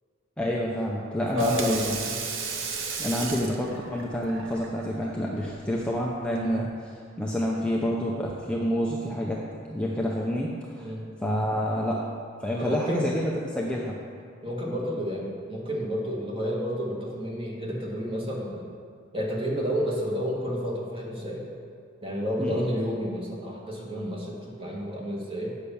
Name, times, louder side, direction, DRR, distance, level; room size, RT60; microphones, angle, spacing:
voice 1, 0.4-2.0 3.0-6.9 7.2-9.4 9.7-10.9 11.2-12.1 12.4-14.0 22.4-22.7, equal, 5° left, -3 dB, 0.6 m, -28 dB
Water tap faucet / Sink (filling or washing), 1.2-6.7, right 5 dB, 70° right, 1.0 m, -36 dB
voice 2, 1.3-2.3 6.4-6.6 10.8-11.0 12.5-13.1 14.4-18.6 19.1-21.5 22.0-25.6, equal, 25° right, -3 dB, 1.8 m, -31 dB
8.4 x 5.7 x 7.0 m, 2.3 s
head